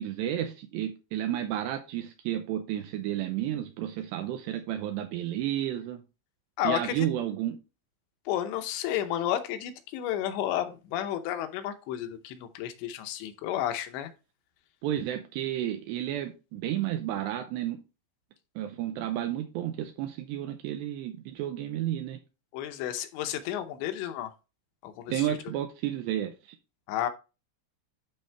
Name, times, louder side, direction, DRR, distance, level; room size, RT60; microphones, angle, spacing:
voice 1, 0.0-6.0 6.6-7.6 14.8-17.8 18.6-22.2 25.1-26.3, right 12 dB, 85° right, 2.5 m, -32 dB
voice 2, 6.6-7.1 8.3-14.1 22.5-24.3 24.8-25.4 26.9-27.1, left 11 dB, 75° left, 2.8 m, -32 dB
11.5 x 4.2 x 3.3 m
omnidirectional pair, 5.7 m